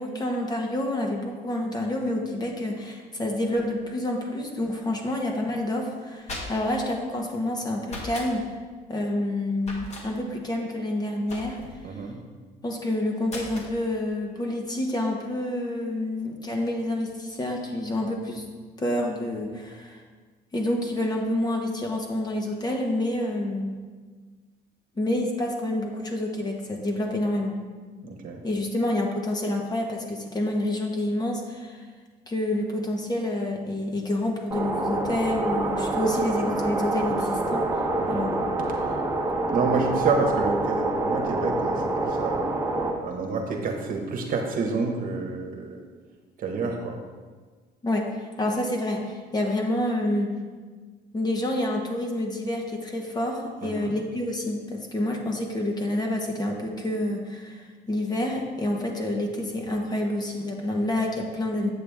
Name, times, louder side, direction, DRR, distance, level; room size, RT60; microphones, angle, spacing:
voice 1, 0.0-8.5 8.9-11.6 12.6-18.5 18.8-20.0 20.5-23.8 25.0-27.6 28.4-31.8 32.3-37.8 38.1-38.4 47.8-50.3 51.1-61.7, left 1 dB, 25° left, 1 dB, 1.3 m, -28 dB
sound 1, 6.0-6.8 7.8-8.3 9.6-10.1 11.3-11.8 13.3-13.7, left 1 dB, 40° left, 1.7 m, -37 dB
voice 2, 11.8-12.2 28.0-28.4 38.0-38.3 39.5-42.6 43.0-45.8 46.4-47.0 53.6-53.9, right 4 dB, 55° right, 2 dB, 1.3 m, -28 dB
sound 2, 34.5-42.9, right 2 dB, 15° right, 1.3 m, -26 dB
8.2 x 6.8 x 3.5 m, 1.5 s
cardioid pair, 110°, 17 cm